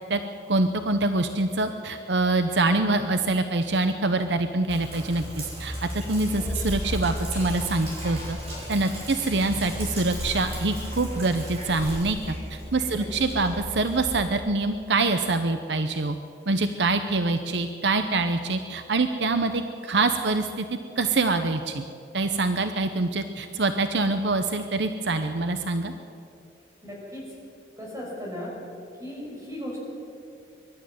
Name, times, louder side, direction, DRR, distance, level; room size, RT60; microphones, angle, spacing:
voice 1, 0.5-5.7 6.1-8.4 8.7-12.2 12.5-16.2 16.5-20.7 21.0-21.8 22.1-25.9, right 3 dB, 80° right, 8 dB, 0.9 m, -25 dB
Sink (filling or washing), 4.7-14.4, equal, 35° right, 5.5 m, -34 dB
voice 2, 12.9-13.4 26.8-27.2 27.8-28.5 29.0-29.8, left 1 dB, 15° right, -3 dB, 5.8 m, -37 dB
23.0 x 12.0 x 9.4 m, 2.6 s
head